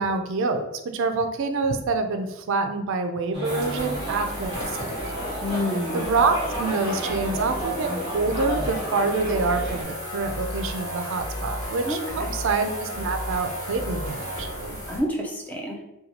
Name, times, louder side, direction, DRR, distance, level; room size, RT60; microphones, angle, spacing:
voice 1, 0.0-5.0 5.9-14.8, right 3 dB, 60° right, 6 dB, 0.3 m, -26 dB
sound 1, 3.3-9.8, right 1 dB, 20° right, 1.2 m, -32 dB
sound 2, 3.4-15.0, equal, 30° left, 1.5 m, -33 dB
voice 2, 5.4-6.0 11.9-12.4 14.9-15.8, left 1 dB, 5° left, 0 dB, 0.4 m, -28 dB
4.0 x 2.2 x 2.8 m, 0.93 s
head